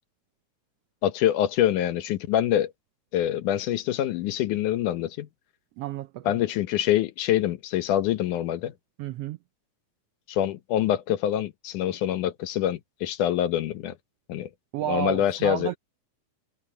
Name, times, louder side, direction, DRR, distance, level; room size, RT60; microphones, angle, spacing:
voice 1, 1.0-2.7 3.1-5.3 6.3-8.7 10.3-13.9 14.3-14.5 14.9-15.7, left 12 dB, 90° left, 2.6 m, -25 dB
voice 2, 5.8-6.4 9.0-9.4 14.7-15.8, right 14 dB, 85° right, 1.3 m, -31 dB
omnidirectional pair, 3.5 m